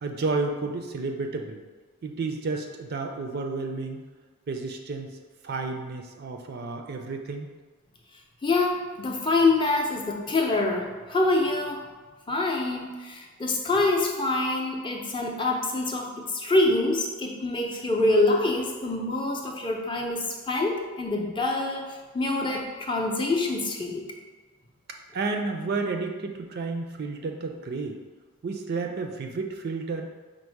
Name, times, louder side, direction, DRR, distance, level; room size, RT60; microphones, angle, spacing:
voice 1, 0.0-1.6 2.0-4.0 4.5-5.2 5.4-7.5 25.1-28.0 28.4-30.1, right 3 dB, 45° right, 4 dB, 0.4 m, -31 dB
voice 2, 8.4-11.8 12.3-24.0, left 2 dB, 20° left, 0 dB, 0.5 m, -25 dB
5.2 x 2.0 x 4.5 m, 1.3 s
head